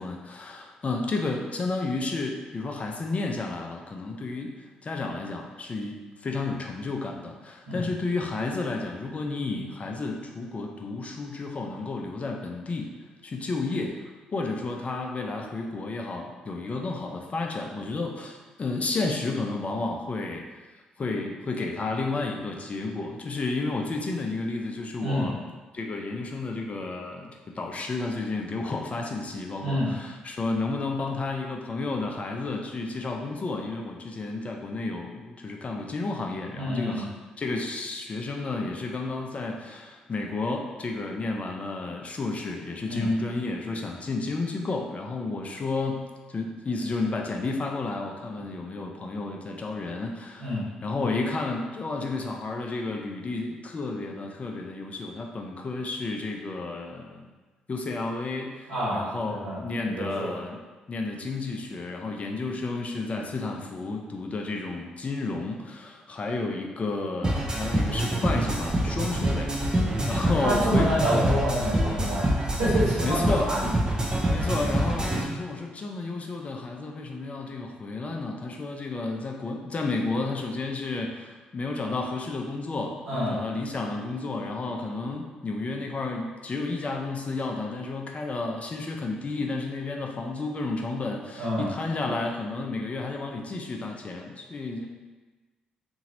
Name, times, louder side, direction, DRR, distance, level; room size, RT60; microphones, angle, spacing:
voice 1, 0.0-4.6 4.8-12.9 13.2-14.0 14.3-20.4 21.0-37.1 37.4-46.0 46.3-57.3 57.7-60.6 60.9-70.9 73.0-73.8 74.3-94.9, left 3 dB, 35° left, 1 dB, 0.5 m, -31 dB
voice 2, 29.6-29.9 36.5-37.1 42.9-43.1 50.4-50.6 58.7-60.3 70.4-73.7 83.0-83.4 91.4-91.7, equal, 80° right, -11 dB, 1.4 m, -28 dB
sound 1, 67.2-75.2, right 1 dB, 20° right, 0.5 m, -26 dB
2.8 x 2.6 x 2.8 m, 1.2 s
hypercardioid pair, 45°, 4 cm